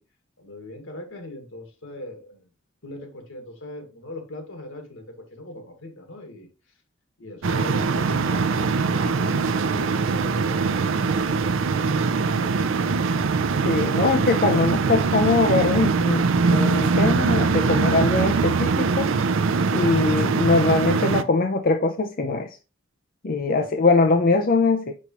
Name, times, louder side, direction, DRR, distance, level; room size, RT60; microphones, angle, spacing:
voice 1, 0.4-2.5 2.8-6.5 7.2-12.7 23.5-24.1, left 1 dB, 90° left, 1.8 m, -40 dB
sound 1, 7.4-21.2, right 4 dB, 80° right, 0.5 m, -22 dB
voice 2, 13.6-19.1 19.7-22.5 23.2-24.9, left 3 dB, 45° left, 0.6 m, -22 dB
6.3 x 5.6 x 3.0 m
head